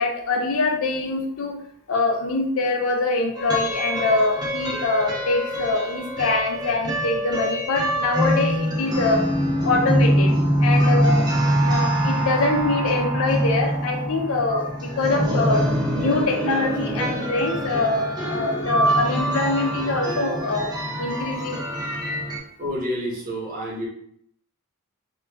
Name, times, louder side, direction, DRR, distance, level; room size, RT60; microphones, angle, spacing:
voice 1, 0.0-1.5 1.9-9.2 9.6-10.3 10.6-11.3 11.6-15.6 16.0-22.2, left 3 dB, 70° left, 2 dB, 0.5 m, -24 dB
sound 1, 3.3-22.4, right 1 dB, 20° right, 0.4 m, -24 dB
voice 2, 10.7-11.0 11.6-11.9 14.5-15.2 18.3-18.9 19.2-19.3 19.6-19.7 20.0-20.1 20.9-21.1 22.6-23.9, equal, 40° right, -5 dB, 0.9 m, -33 dB
2.2 x 2.2 x 3.3 m, 0.68 s
head